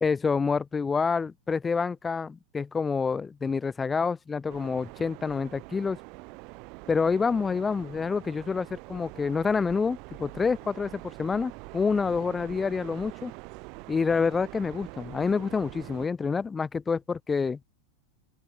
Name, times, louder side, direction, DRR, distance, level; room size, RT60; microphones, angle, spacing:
voice 1, 0.0-6.0 6.9-13.3 13.9-17.6, left 5 dB, 15° left, 0.4 m, -27 dB
sound 1, 4.5-16.1, right 30 dB, 45° right, 1.5 m, -45 dB
open air
figure-of-eight pair, 90°, 0 cm